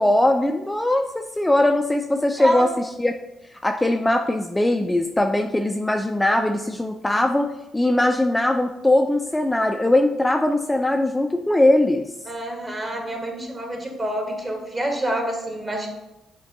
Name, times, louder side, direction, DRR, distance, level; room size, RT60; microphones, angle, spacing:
voice 1, 0.0-3.2 3.6-12.1, left 1 dB, 15° left, 4 dB, 0.3 m, -20 dB
voice 2, 2.4-2.7 12.3-15.9, right 1 dB, 30° right, 2 dB, 1.1 m, -27 dB
6.5 x 2.2 x 2.7 m, 0.91 s
supercardioid pair, 60°, 0 cm